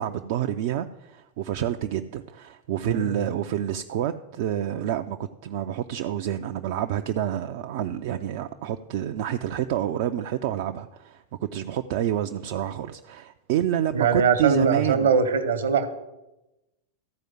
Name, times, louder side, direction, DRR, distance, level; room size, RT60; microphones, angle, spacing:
voice 1, 0.0-5.2 5.4-15.1, right 11 dB, 50° right, 0.4 m, -28 dB
voice 2, 2.8-3.2 13.9-15.9, right 5 dB, 65° right, 1.1 m, -22 dB
13.5 x 4.9 x 7.6 m
figure-of-eight pair, 90°, 0 cm